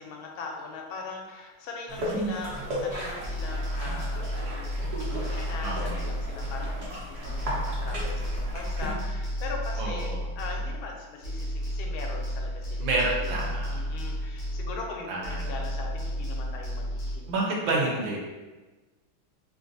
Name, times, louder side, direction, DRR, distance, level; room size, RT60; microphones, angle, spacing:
voice 1, 0.0-12.8 13.4-17.3 17.8-18.2, left 4 dB, 85° left, 1 dB, 1.4 m, -40 dB
sound 1, 1.9-8.9, equal, 50° right, 0.9 m, -35 dB
sound 2, 3.2-7.0 7.2-11.0 11.2-15.0 15.2-17.2, equal, 60° left, 0.5 m, -32 dB
voice 2, 9.8-10.3 12.8-13.8 15.1-15.6 17.3-18.2, right 2 dB, 75° right, -2 dB, 1.4 m, -29 dB
3.4 x 2.5 x 2.6 m, 1.2 s
omnidirectional pair, 2.2 m